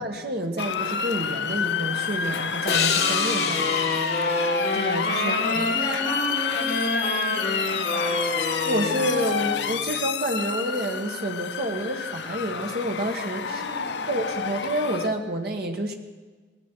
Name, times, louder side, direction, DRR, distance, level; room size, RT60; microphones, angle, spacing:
voice 1, 0.0-4.1 4.7-5.6 8.6-13.6 14.1-15.9, right 1 dB, 65° right, 3 dB, 1.6 m, -29 dB
Motor vehicle (road) / Siren, 0.6-15.1, left 7 dB, 90° left, 0.6 m, -29 dB
sound 1, 2.7-6.0, left 7 dB, 70° left, 1.2 m, -29 dB
sound 2, 3.0-9.9, left 1 dB, 35° left, 5.9 m, -28 dB
voice 2, 5.2-8.5 13.5-14.1, left 1 dB, 50° left, -5 dB, 5.9 m, -36 dB
19.5 x 15.0 x 4.6 m, 1.4 s
head